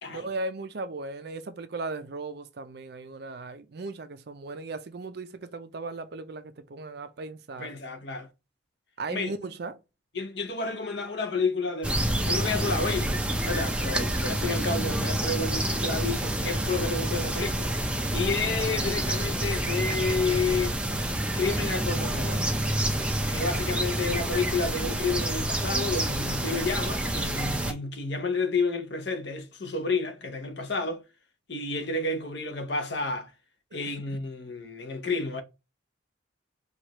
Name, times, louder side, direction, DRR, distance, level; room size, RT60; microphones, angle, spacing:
voice 1, 0.1-7.7 9.0-9.8, right 3 dB, 55° right, 0.5 m, -37 dB
voice 2, 7.6-8.3 9.1-9.3 10.1-17.7 18.1-20.8 21.3-22.4 23.3-31.0 31.5-33.3 33.7-35.4, left 3 dB, 60° left, 0.8 m, -30 dB
sound 1, 11.8-27.7, right 1 dB, 5° right, 0.4 m, -28 dB
4.6 x 2.4 x 2.9 m
head